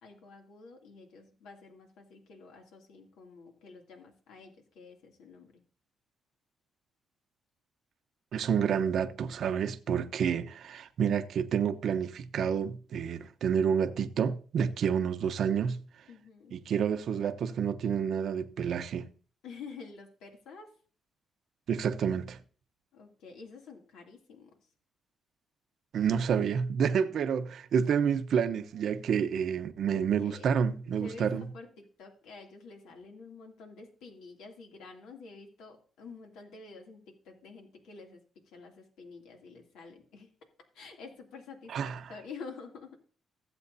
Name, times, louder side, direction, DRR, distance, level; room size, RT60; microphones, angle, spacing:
voice 1, 0.0-5.6 16.1-16.6 19.4-20.7 22.9-24.6 29.9-30.6 31.0-40.3 40.7-43.0, left 4 dB, 85° left, 2.5 m, -49 dB
voice 2, 8.3-15.8 16.5-19.1 21.7-22.4 25.9-31.5 41.7-42.1, right 7 dB, 65° right, 0.8 m, -29 dB
15.5 x 7.7 x 2.7 m
cardioid pair, 90°, 0 cm